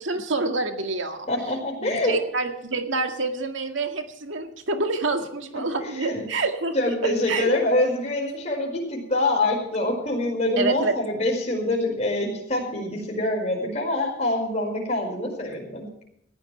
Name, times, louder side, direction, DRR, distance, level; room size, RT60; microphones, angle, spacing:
voice 1, 0.0-1.3 1.8-6.7 7.0-7.5 10.6-10.9, right 3 dB, 90° right, 5 dB, 2.0 m, -27 dB
voice 2, 1.3-2.2 5.8-6.2 6.7-15.9, left 2 dB, 35° left, -1 dB, 5.0 m, -25 dB
20.0 x 15.0 x 3.3 m, 0.73 s
head